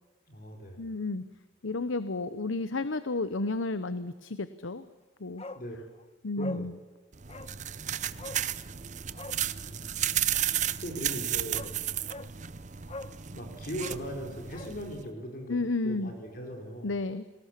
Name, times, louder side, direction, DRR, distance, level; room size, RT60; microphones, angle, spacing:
voice 1, 0.3-1.0 5.5-5.8 6.4-6.7 9.6-10.2 10.8-11.7 13.3-16.9, equal, 50° left, 2 dB, 4.3 m, -39 dB
voice 2, 0.8-1.2 1.6-4.9 5.2-5.4 6.2-6.8 15.5-16.1 16.8-17.2, left 3 dB, 85° left, 13 dB, 0.9 m, -32 dB
Bark, 5.4-5.7 5.9-6.0 6.4-6.7 7.3-7.5 8.2-8.4 9.1-9.4 11.0-11.1 11.5-11.7 12.1-12.3 12.9-13.2 13.7-14.8 15.0-15.1, left 2 dB, 30° left, 1.1 m, -42 dB
sound 1, 7.1-15.0, right 11 dB, 40° right, 0.7 m, -33 dB
30.0 x 19.5 x 7.5 m, 1.3 s
head